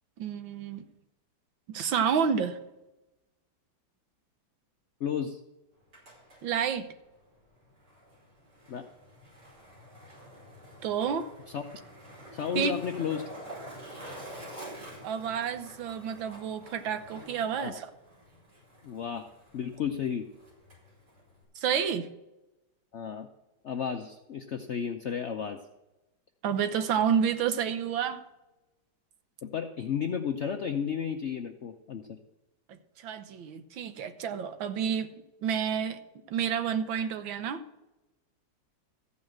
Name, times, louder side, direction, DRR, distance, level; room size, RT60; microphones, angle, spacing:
voice 1, 0.2-0.8 1.7-2.6 6.4-6.9 10.8-11.3 12.5-12.7 15.0-17.8 21.6-22.1 26.4-28.2 33.0-35.1 35.4-36.0 36.3-37.6, right 7 dB, 80° right, 10 dB, 1.7 m, -29 dB
voice 2, 5.0-5.4 8.7-8.9 11.5-11.6 12.3-13.3 17.5-17.9 18.8-19.3 19.5-20.3 22.9-23.3 23.6-25.6 29.4-32.2 37.0-37.1, left 7 dB, 80° left, 5 dB, 0.6 m, -33 dB
Skateboard, 5.7-21.4, right 1 dB, 55° right, 5.9 m, -48 dB
14.5 x 5.6 x 7.7 m, 0.98 s
omnidirectional pair, 2.1 m